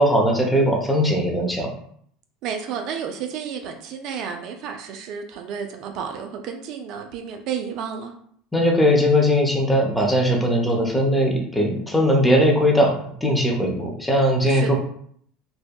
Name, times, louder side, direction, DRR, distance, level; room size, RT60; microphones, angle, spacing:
voice 1, 0.0-1.8 8.5-14.8, equal, 5° left, 0 dB, 0.6 m, -19 dB
voice 2, 2.4-8.1 14.4-14.8, right 7 dB, 60° right, 4 dB, 0.3 m, -31 dB
2.7 x 2.1 x 2.2 m, 0.64 s
hypercardioid pair, 90°, 0 cm